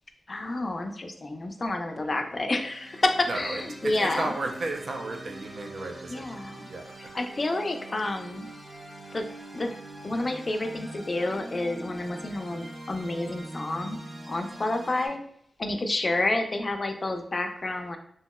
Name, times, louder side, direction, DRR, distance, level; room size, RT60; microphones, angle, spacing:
voice 1, 0.3-4.3 6.1-6.6 7.1-8.5 9.1-9.3 9.5-9.7 10.0-14.0 14.3-15.2 15.6-18.0, left 2 dB, 45° left, 6 dB, 0.4 m, -29 dB
sound 1, 2.5-15.1, right 1 dB, 40° right, 0.9 m, -43 dB
voice 2, 3.3-7.1, right 2 dB, 70° right, 3 dB, 0.4 m, -34 dB
2.8 x 2.7 x 2.2 m, 0.68 s
cardioid pair, 55°, 0 cm